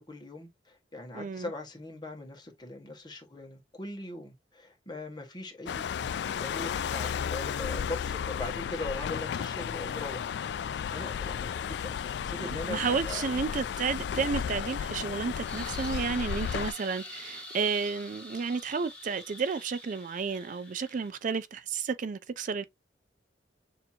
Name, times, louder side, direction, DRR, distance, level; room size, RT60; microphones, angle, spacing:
voice 1, 0.0-6.1 6.4-13.2, left 2 dB, 25° left, 1.5 m, -41 dB
voice 2, 1.1-1.5 12.4-22.6, right 5 dB, 45° right, 0.4 m, -32 dB
sound 1, 5.7-16.7, left 7 dB, 70° left, 0.3 m, -33 dB
sound 2, 15.5-21.1, left 1 dB, 5° left, 2.1 m, -46 dB
6.7 x 2.9 x 2.7 m
head